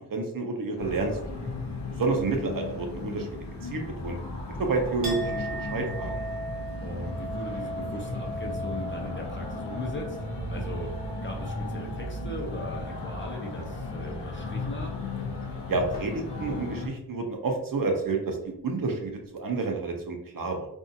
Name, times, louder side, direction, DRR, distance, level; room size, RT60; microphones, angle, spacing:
voice 1, 0.1-1.6 2.0-3.3 3.6-4.2 4.6-6.1 15.7-18.4 18.6-20.7, right 3 dB, 55° right, 2 dB, 0.6 m, -29 dB
sound 1, 0.8-16.9, left 2 dB, 90° left, 0.6 m, -36 dB
Chink clink, 5.0-12.7 13.1-13.7, right 1 dB, 85° right, 0.7 m, -39 dB
voice 2, 6.8-10.2 10.5-10.9 11.2-15.0, left 1 dB, 30° left, 0 dB, 0.5 m, -38 dB
2.6 x 2.3 x 2.6 m, 0.77 s
wide cardioid pair, 85°, 41 cm